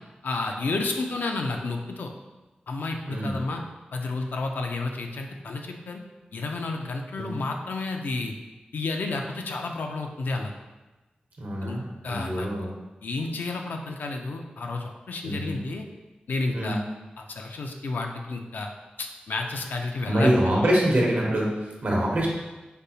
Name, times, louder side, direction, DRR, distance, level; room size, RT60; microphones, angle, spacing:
voice 1, 0.2-2.1 2.7-3.6 3.9-6.0 6.3-8.3 8.7-10.5 11.6-12.7 13.0-15.9 16.3-16.8 17.2-18.7 19.0-20.8, left 3 dB, 85° left, 3 dB, 0.4 m, -31 dB
voice 2, 3.1-3.4 7.2-7.3 11.4-12.7 15.2-15.6 16.5-16.8 20.1-22.3, right 1 dB, 70° right, -2 dB, 0.8 m, -25 dB
5.0 x 2.0 x 2.7 m, 1.1 s
wide cardioid pair, 65°, 3 cm